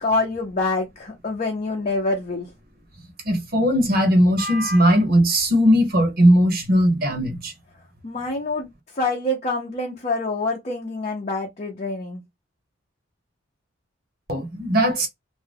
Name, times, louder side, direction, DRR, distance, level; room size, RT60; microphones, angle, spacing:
voice 1, 0.0-2.5 8.0-8.7 8.9-12.2, left 2 dB, 35° left, 0.6 m, -26 dB
voice 2, 3.2-7.5 14.3-15.1, equal, 50° right, 0.9 m, -18 dB
2.5 x 2.2 x 3.3 m
head